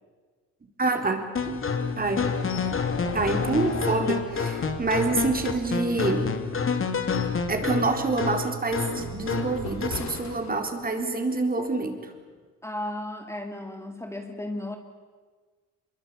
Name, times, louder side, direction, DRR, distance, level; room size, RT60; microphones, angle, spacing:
voice 1, 0.8-1.7 2.0-2.2 3.1-6.3 7.5-12.1, right 3 dB, 30° right, 5 dB, 4.0 m, -27 dB
sound 1, 1.4-10.1, left 5 dB, 45° left, 2.7 m, -28 dB
sound 2, 2.5-2.8 3.2-3.3 3.7-4.6 5.1-6.1 6.7-7.5 7.9-8.1 8.7-11.1 11.5-11.7, left 6 dB, 65° left, 2.9 m, -42 dB
voice 2, 12.6-14.8, left 1 dB, 10° left, 4 dB, 2.2 m, -34 dB
25.0 x 22.5 x 8.5 m, 1.5 s
cardioid pair, 90°, 30 cm